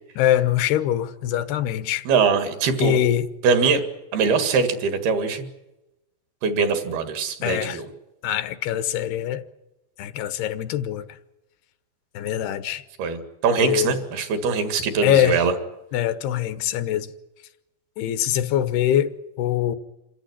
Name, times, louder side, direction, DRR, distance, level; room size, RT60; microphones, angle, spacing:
voice 1, 0.2-2.0 2.8-3.3 7.4-7.8 8.2-9.4 10.0-11.1 12.1-12.8 13.6-14.0 15.0-15.4 15.9-17.1 18.0-19.1 19.4-19.8, left 11 dB, 75° left, 2.9 m, -23 dB
voice 2, 2.1-3.0 3.4-3.8 4.1-5.5 6.4-7.9 13.0-15.5, right 5 dB, 70° right, 3.8 m, -22 dB
27.0 x 14.5 x 9.9 m
omnidirectional pair, 4.8 m